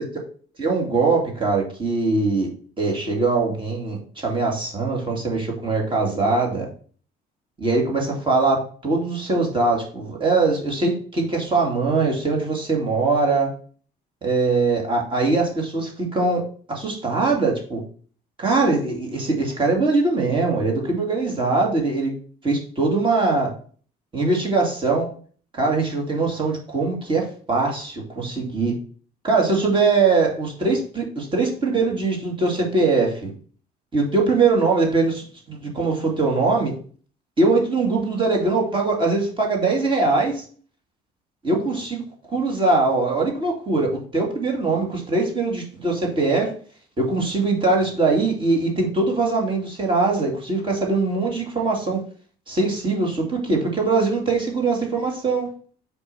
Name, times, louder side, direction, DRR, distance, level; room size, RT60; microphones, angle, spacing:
voice 1, 0.6-2.5 2.8-6.7 7.6-13.5 14.2-16.4 16.7-17.8 18.4-22.1 22.4-23.5 24.1-25.1 25.5-28.7 29.2-33.3 33.9-36.7 37.4-40.4 41.4-42.0 42.3-46.5 47.0-52.0 52.5-55.5, right 3 dB, 30° right, -1 dB, 2.4 m, -22 dB
5.4 x 4.6 x 5.6 m, 0.44 s
cardioid pair, 110°, 17 cm